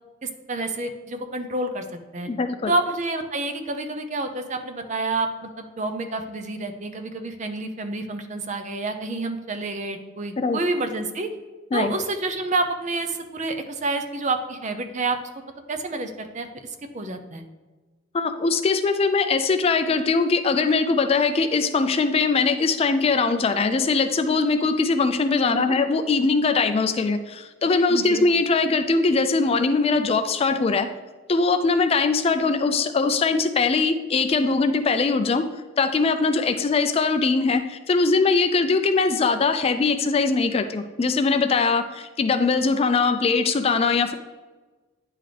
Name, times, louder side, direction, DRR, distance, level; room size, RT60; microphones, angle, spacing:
voice 1, 0.2-2.3 2.7-11.3 11.7-15.2 15.7-17.4 25.5-25.7 27.9-28.2, right 2 dB, 40° right, 7 dB, 0.6 m, -29 dB
voice 2, 2.3-2.7 10.4-10.6 11.7-11.9 18.1-30.9 31.3-35.4 35.8-44.1, left 4 dB, 30° left, 8 dB, 0.3 m, -21 dB
9.8 x 4.0 x 3.3 m, 1.3 s
head